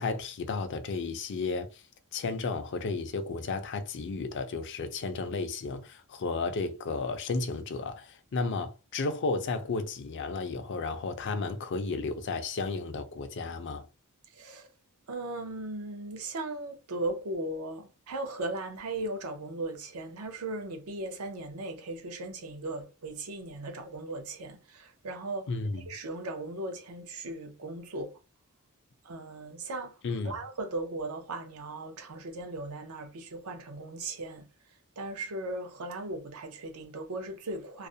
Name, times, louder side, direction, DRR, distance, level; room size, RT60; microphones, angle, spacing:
voice 1, 0.0-1.8 2.1-13.9 25.5-25.9 30.0-30.3, left 3 dB, 55° left, 0.4 m, -33 dB
voice 2, 14.3-14.7 15.1-25.5 25.9-28.2 29.0-30.0 30.2-34.5 35.0-37.9, right 2 dB, 70° right, 0.6 m, -37 dB
2.4 x 2.1 x 2.6 m
head